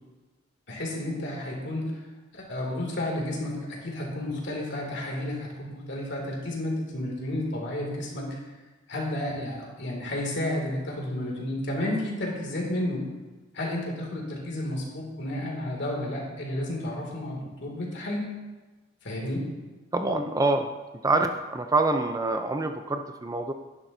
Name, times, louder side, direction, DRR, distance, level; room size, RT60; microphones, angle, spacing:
voice 1, 0.7-2.0 2.3-8.4 8.9-13.0 13.5-18.3 19.0-19.5, left 1 dB, 60° left, -2 dB, 2.4 m, -31 dB
voice 2, 19.9-20.7 21.0-23.5, right 2 dB, 15° right, 6 dB, 0.4 m, -26 dB
11.5 x 10.0 x 2.7 m, 1.2 s
head